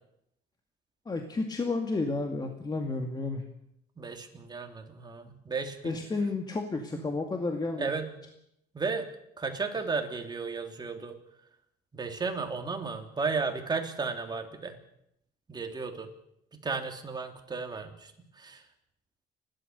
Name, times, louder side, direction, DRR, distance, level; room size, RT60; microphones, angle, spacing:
voice 1, 1.1-3.4 5.8-7.9, left 3 dB, 25° left, 4 dB, 2.2 m, -31 dB
voice 2, 4.0-6.0 6.9-7.1 7.8-8.1 8.7-9.1 9.4-11.1 11.9-14.7 15.5-16.1 16.5-18.1 18.4-18.6, right 4 dB, 25° right, 4 dB, 3.2 m, -34 dB
30.0 x 12.5 x 6.9 m, 0.76 s
cardioid pair, 110°, 17 cm